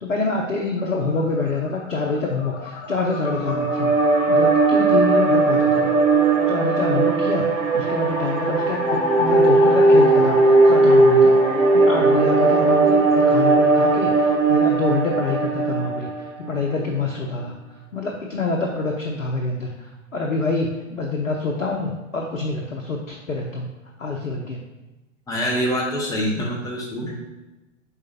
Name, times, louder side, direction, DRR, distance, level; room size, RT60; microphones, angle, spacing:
voice 1, 0.0-3.9 4.3-6.0 6.5-11.4 11.7-17.5 17.9-23.7 24.0-24.6, left 3 dB, 85° left, 1 dB, 0.6 m, -26 dB
sound 1, 0.5-13.7, left 5 dB, 50° left, 0.7 m, -31 dB
sound 2, 3.2-16.5, right 3 dB, 70° right, 0.8 m, -18 dB
voice 2, 25.3-27.1, equal, 10° left, -4 dB, 0.6 m, -25 dB
4.8 x 3.9 x 2.8 m, 1.1 s
figure-of-eight pair, 105°, 39 cm